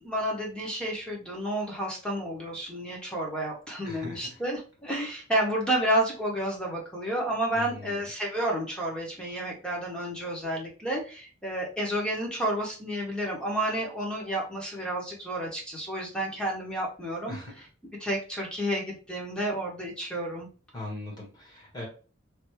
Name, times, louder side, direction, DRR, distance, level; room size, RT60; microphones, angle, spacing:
voice 1, 0.0-20.5, right 1 dB, 5° left, -2 dB, 0.9 m, -31 dB
voice 2, 3.8-4.4 7.5-8.0 17.3-17.7 20.7-21.9, left 2 dB, 20° left, -2 dB, 1.3 m, -40 dB
3.3 x 2.6 x 3.0 m, 0.37 s
head